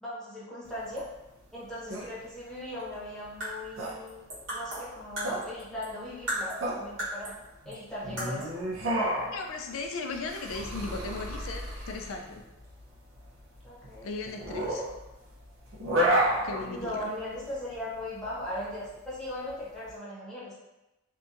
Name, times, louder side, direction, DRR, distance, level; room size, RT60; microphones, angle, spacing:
voice 1, 0.0-1.0 1.5-7.3 7.6-8.6 13.6-14.1 16.7-20.6, left 1 dB, 5° left, -10 dB, 0.8 m, -38 dB
sound 1, 0.7-19.9, right 1 dB, 90° right, 0.7 m, -32 dB
sound 2, 3.2-6.0 6.3-7.4 7.7-7.8 8.2-8.6, equal, 70° right, 1.1 m, -36 dB
voice 2, 9.3-12.4 14.0-14.8 16.4-17.1, left 3 dB, 90° left, 4 dB, 0.4 m, -37 dB
2.7 x 2.2 x 2.4 m, 0.98 s
head